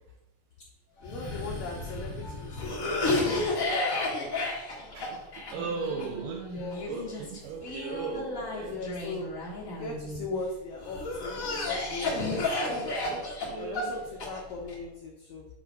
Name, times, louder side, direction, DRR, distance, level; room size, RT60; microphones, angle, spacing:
voice 1, 1.0-3.7 5.6-5.7 6.5-6.9 8.6-9.3 9.7-12.9 13.6-15.5, left 3 dB, 80° left, -1 dB, 1.6 m, -39 dB
Cough, 1.0-10.2 10.8-14.7, left 2 dB, 50° left, 0.9 m, -32 dB
voice 2, 5.0-8.8 13.4-14.2, right 5 dB, 80° right, 3 dB, 2.0 m, -37 dB
8.6 x 3.3 x 5.2 m, 0.98 s
omnidirectional pair, 4.4 m